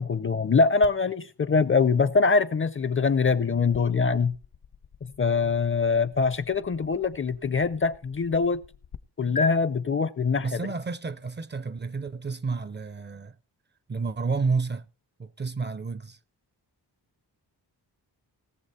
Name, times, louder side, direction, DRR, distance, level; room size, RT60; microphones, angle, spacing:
voice 1, 0.0-4.3 5.2-8.6 9.2-10.6, left 4 dB, 30° left, 0.5 m, -23 dB
sound 1, 0.8-9.0 9.4-9.5, left 4 dB, 65° left, 0.8 m, -42 dB
voice 2, 10.4-13.4 13.9-14.9 15.2-16.2, right 4 dB, 30° right, 0.5 m, -30 dB
18.5 x 7.1 x 4.1 m
wide cardioid pair, 150°, 40 cm